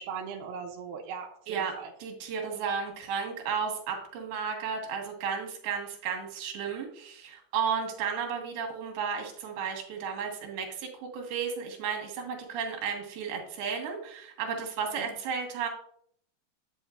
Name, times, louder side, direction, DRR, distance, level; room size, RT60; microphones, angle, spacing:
voice 1, 0.0-1.9 15.0-15.1, right 6 dB, 80° right, 1 dB, 2.4 m, -39 dB
voice 2, 1.5-15.7, right 6 dB, 65° right, 2 dB, 3.2 m, -33 dB
9.0 x 8.3 x 2.5 m, 0.65 s
omnidirectional pair, 5.3 m